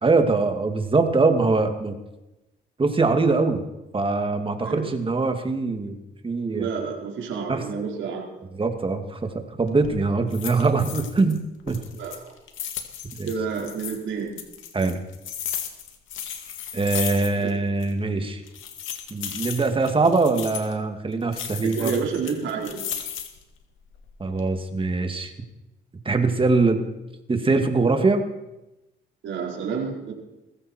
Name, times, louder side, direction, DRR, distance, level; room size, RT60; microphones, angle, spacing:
voice 1, 0.0-2.0 2.8-3.6 3.9-6.0 6.2-6.7 7.5-7.6 8.5-11.4 11.7-11.8 13.2-13.3 14.7-15.0 16.7-18.4 19.1-22.0 24.2-25.3 26.0-26.8 27.3-28.3, right 3 dB, 25° right, 6 dB, 2.4 m, -22 dB
voice 2, 6.5-8.3 11.9-12.3 13.3-14.3 21.6-22.8 29.2-30.1, right 6 dB, 75° right, -1 dB, 4.7 m, -29 dB
sound 1, 9.6-9.9 10.3-11.4 11.7-14.0 14.4-17.6 17.8-17.9 18.5-20.7 21.3-23.4 23.9-24.5, left 9 dB, 80° left, 2.2 m, -35 dB
21.0 x 15.0 x 4.6 m, 0.97 s
cardioid pair, 90°, 20 cm